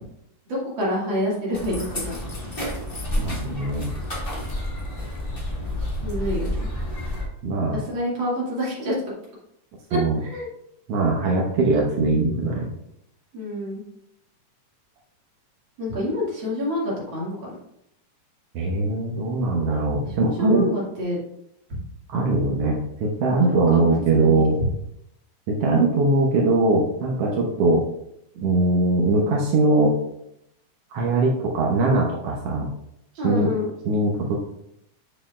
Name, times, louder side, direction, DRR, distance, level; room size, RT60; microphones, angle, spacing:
voice 1, 0.5-2.2 6.0-6.6 7.7-9.0 9.9-10.5 13.3-13.8 15.8-17.5 20.1-21.2 23.4-24.7 33.2-33.7, left 1 dB, 40° right, -5 dB, 2.7 m, -27 dB
sound 1, 1.5-7.2, left 1 dB, 30° left, 1.1 m, -29 dB
voice 2, 3.2-3.9 7.4-7.8 9.9-10.2 10.9-12.7 18.5-20.7 22.1-24.6 25.5-27.8 28.4-29.9 30.9-32.7 33.2-33.5 33.8-34.4, right 2 dB, 70° right, -2 dB, 1.5 m, -21 dB
7.7 x 6.6 x 2.5 m, 0.78 s
omnidirectional pair, 3.8 m